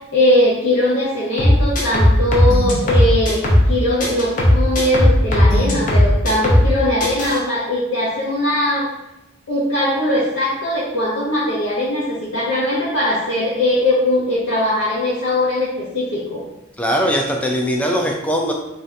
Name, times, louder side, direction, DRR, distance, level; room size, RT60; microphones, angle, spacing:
voice 1, 0.1-3.4 3.7-8.8 9.5-16.4, left 1 dB, 85° left, -8 dB, 0.7 m, -20 dB
sound 1, 1.4-3.7 4.0-6.7 7.0-7.4, left 1 dB, 45° left, 0.6 m, -15 dB
voice 2, 16.8-18.5, equal, 5° left, 0 dB, 0.3 m, -20 dB
2.6 x 2.5 x 3.2 m, 0.93 s
head